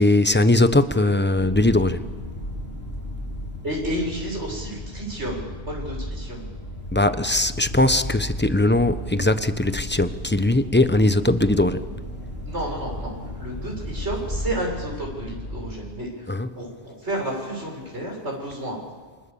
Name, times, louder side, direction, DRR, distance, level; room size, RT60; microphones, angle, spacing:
voice 1, 0.0-2.1 6.9-11.9 16.3-16.6, left 2 dB, 10° left, 0.9 m, -20 dB
sound 1, 1.3-15.7, left 1 dB, 65° left, 5.4 m, -34 dB
voice 2, 3.6-6.5 12.5-16.1 16.5-18.8, right 1 dB, 85° right, 7.7 m, -31 dB
28.0 x 25.0 x 7.2 m
omnidirectional pair, 1.1 m